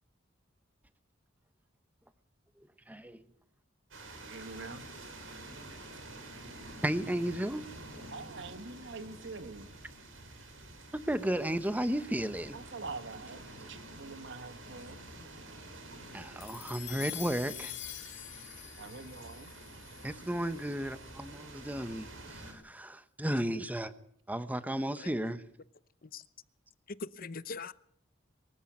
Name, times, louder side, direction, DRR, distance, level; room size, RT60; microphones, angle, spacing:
voice 1, 2.9-3.2 6.8-7.7 10.9-12.6 16.1-17.7 20.0-23.9 24.3-25.4, right 1 dB, 10° right, 1.1 m, -34 dB
sound 1, 3.9-22.5, right 2 dB, 85° right, 5.2 m, -49 dB
voice 2, 4.1-4.9 8.1-9.7 12.5-15.0 18.8-19.5, right 3 dB, 65° right, 1.5 m, -45 dB
sound 2, 16.4-20.9, left 12 dB, 65° left, 2.9 m, -45 dB
voice 3, 26.9-27.7, left 4 dB, 50° left, 0.8 m, -41 dB
23.0 x 14.0 x 8.7 m
head